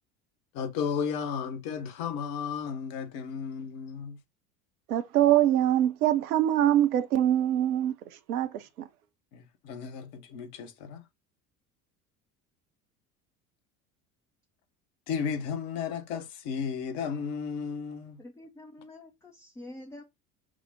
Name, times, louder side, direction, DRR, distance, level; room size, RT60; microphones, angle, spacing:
voice 1, 0.5-4.2 9.3-11.0 15.1-18.2, left 6 dB, 50° left, 1.0 m, -34 dB
voice 2, 4.9-8.9, right 12 dB, 70° right, 0.7 m, -24 dB
voice 3, 18.2-20.0, left 1 dB, 5° left, 0.4 m, -46 dB
6.0 x 2.1 x 4.0 m
figure-of-eight pair, 70°, 46 cm